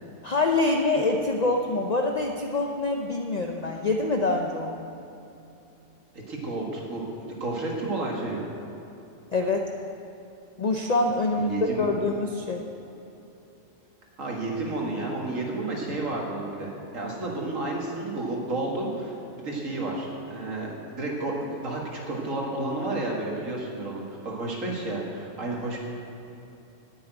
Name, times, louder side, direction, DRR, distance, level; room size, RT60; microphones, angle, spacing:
voice 1, 0.2-4.8 9.3-9.7 10.6-12.7, left 2 dB, 45° left, 2 dB, 0.6 m, -25 dB
voice 2, 6.3-8.5 11.4-11.9 14.2-19.1 19.4-25.8, right 2 dB, 85° right, -2 dB, 2.2 m, -31 dB
10.0 x 7.0 x 9.0 m, 2.9 s
omnidirectional pair, 1.3 m